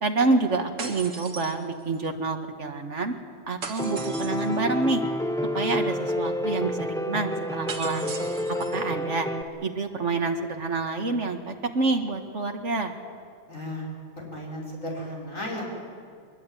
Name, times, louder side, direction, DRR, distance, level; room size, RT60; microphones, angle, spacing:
voice 1, 0.0-3.1 3.5-5.0 5.5-8.1 8.7-9.3 9.6-12.9, right 3 dB, 45° right, 5 dB, 1.9 m, -27 dB
sound 1, 0.8-2.1 3.6-4.6 7.7-8.9, right 4 dB, 80° right, 2.4 m, -38 dB
Piano, 3.8-9.4, equal, 5° left, 0.3 m, -29 dB
voice 2, 13.5-13.9 14.2-15.6, left 1 dB, 50° left, -2 dB, 6.1 m, -34 dB
23.0 x 21.5 x 9.1 m, 2.3 s
omnidirectional pair, 1.8 m